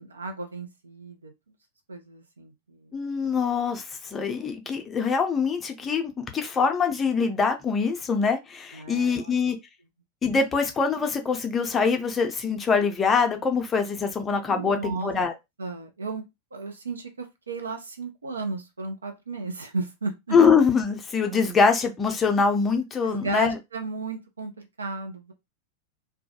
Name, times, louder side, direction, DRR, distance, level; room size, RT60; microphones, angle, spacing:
voice 1, 0.0-1.3 1.9-3.0 8.7-9.4 14.5-15.1 15.6-16.2 16.5-20.4 23.0-25.3, right 3 dB, 75° right, 0.6 m, -34 dB
voice 2, 2.9-9.6 10.2-15.3 20.3-23.6, left 5 dB, 20° left, 0.5 m, -24 dB
2.3 x 2.2 x 2.7 m
figure-of-eight pair, 90°, 0 cm